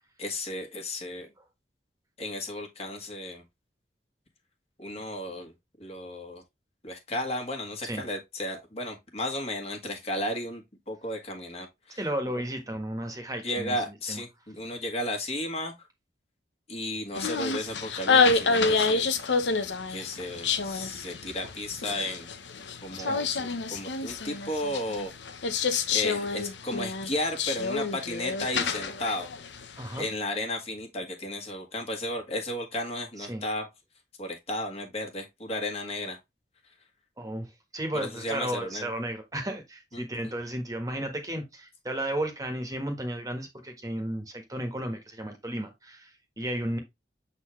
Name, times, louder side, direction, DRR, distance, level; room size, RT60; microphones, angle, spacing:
voice 1, 0.2-1.3 2.2-3.4 4.8-5.5 5.8-6.4 6.8-12.0 13.4-15.7 16.7-19.1 19.9-22.3 22.8-25.1 25.9-29.3 30.0-33.7 34.2-36.2 37.9-38.9 39.9-40.3, left 1 dB, 35° left, 1.7 m, -34 dB
voice 2, 12.0-14.2 23.0-23.2 29.8-30.1 33.2-33.4 37.2-46.8, right 1 dB, 20° right, 1.5 m, -34 dB
sound 1, 17.1-30.0, left 4 dB, 80° left, 0.9 m, -28 dB
7.5 x 4.1 x 3.1 m
head